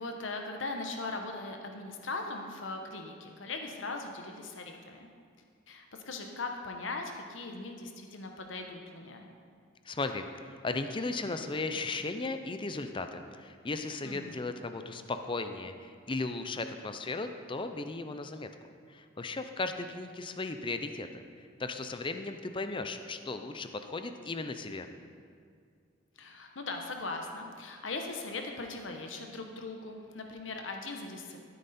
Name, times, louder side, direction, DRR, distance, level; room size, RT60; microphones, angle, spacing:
voice 1, 0.0-5.1 5.7-9.3 14.0-14.4 26.2-31.4, left 3 dB, 80° left, 3 dB, 1.1 m, -39 dB
voice 2, 9.8-18.5 18.9-24.9, left 3 dB, 25° left, 8 dB, 0.6 m, -36 dB
13.0 x 9.2 x 4.3 m, 2.2 s
head